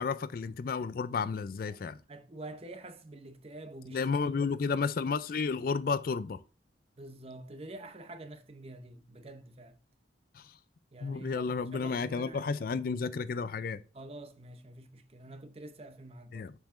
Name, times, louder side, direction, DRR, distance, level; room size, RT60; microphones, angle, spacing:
voice 1, 0.0-2.0 3.9-6.4 11.0-13.8 16.3-16.5, left 5 dB, 50° left, 0.3 m, -32 dB
voice 2, 2.1-4.3 7.0-9.8 10.9-12.7 13.9-16.5, right 2 dB, 30° right, 0.7 m, -47 dB
7.1 x 5.5 x 2.5 m
head